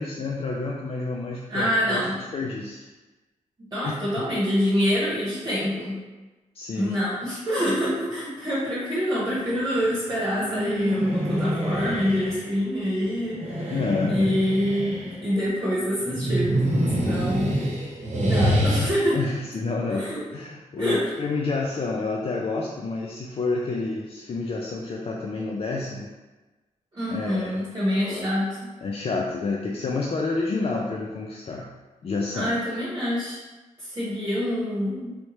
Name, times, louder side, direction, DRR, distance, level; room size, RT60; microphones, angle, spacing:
voice 1, 0.0-2.9 3.8-4.0 6.5-6.9 13.7-14.3 19.1-26.1 27.1-27.6 28.0-28.3 28.8-31.7 32.0-32.5, left 3 dB, 45° left, -1 dB, 0.4 m, -29 dB
voice 2, 1.5-2.1 3.7-6.0 6.7-13.8 14.1-16.6 17.0-17.6 18.2-19.2 19.9-20.2 20.8-21.1 26.9-28.6 32.3-33.4 33.8-35.1, equal, 30° right, -9 dB, 1.1 m, -26 dB
sound 1, 10.1-12.4 13.3-15.2 16.0-18.9, equal, 55° right, 0.9 m, -26 dB
3.2 x 2.7 x 3.1 m, 1.2 s
cardioid pair, 75°, 14 cm